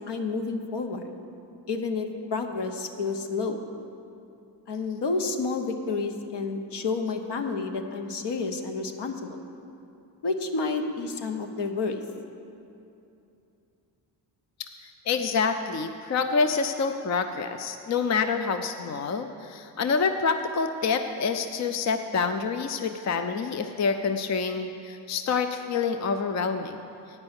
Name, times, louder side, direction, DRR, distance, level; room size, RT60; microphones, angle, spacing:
voice 1, 0.1-1.1 1.7-3.6 4.7-9.4 10.2-12.0, left 4 dB, 70° left, 5 dB, 1.0 m, -30 dB
voice 2, 14.8-26.8, left 5 dB, 40° left, 8 dB, 0.5 m, -27 dB
9.7 x 5.5 x 8.0 m, 2.7 s
cardioid pair, 85°, 43 cm